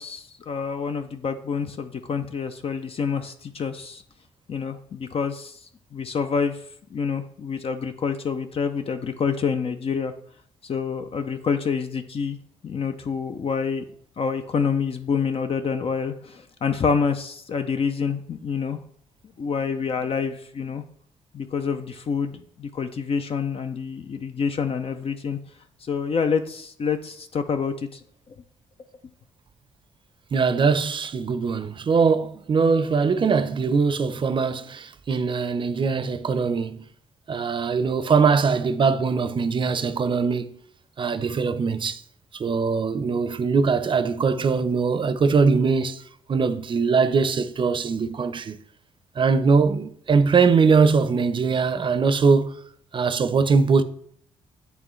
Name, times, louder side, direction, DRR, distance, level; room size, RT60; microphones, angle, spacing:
voice 1, 0.0-4.0 4.5-5.6 5.9-6.6 6.9-10.1 10.6-12.4 12.6-13.8 14.2-18.8 19.4-20.9 21.3-22.3 22.6-25.4 25.8-28.0, left 6 dB, 50° left, 0.5 m, -27 dB
voice 2, 30.3-36.8 37.3-40.5 41.0-42.0 42.4-46.0 46.3-48.6 49.2-52.6 52.9-53.8, right 5 dB, 40° right, 0.6 m, -21 dB
8.9 x 3.4 x 3.1 m
supercardioid pair, 55°, 13 cm